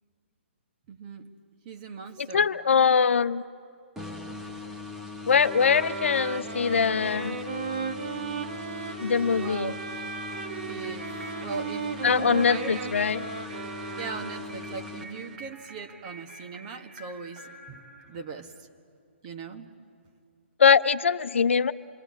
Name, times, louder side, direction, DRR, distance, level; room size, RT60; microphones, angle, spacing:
voice 1, 0.9-1.3 1.7-2.5 9.4-9.8 10.7-12.0 12.5-12.9 14.0-17.8 18.1-18.7 19.2-19.7, right 5 dB, 35° right, 5 dB, 1.8 m, -39 dB
voice 2, 2.3-3.4 5.3-7.4 9.0-9.7 12.0-13.2 20.6-21.7, left 6 dB, 80° left, 12 dB, 0.7 m, -22 dB
sound 1, 4.0-15.7, left 4 dB, 5° right, 1.4 m, -40 dB
sound 2, 5.3-14.8, right 6 dB, 55° right, 1.6 m, -36 dB
sound 3, 10.3-18.6, right 2 dB, 85° right, 3.0 m, -49 dB
28.0 x 22.5 x 8.8 m, 2.3 s
hypercardioid pair, 145°, 7 cm